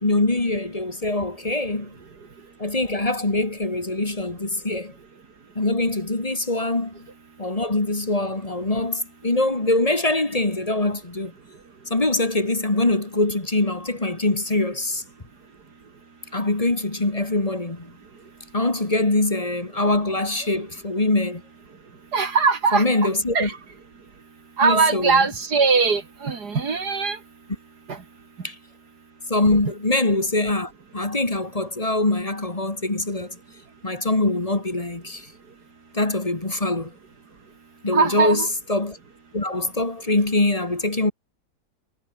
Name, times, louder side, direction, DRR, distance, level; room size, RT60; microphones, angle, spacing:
voice 1, 0.0-1.9 2.6-4.9 5.6-7.1 7.4-11.3 11.9-15.0 16.3-17.9 18.5-21.4 22.7-23.5 24.6-25.3 28.4-28.6 29.3-33.4 33.8-35.3 35.9-36.9 37.8-39.0 39.3-41.1, left 2 dB, 20° left, 2.0 m, -23 dB
voice 2, 22.1-22.9 23.3-23.6 24.6-27.2 27.9-28.0 37.9-38.5, right 5 dB, 65° right, 2.9 m, -20 dB
omnidirectional pair, 1.9 m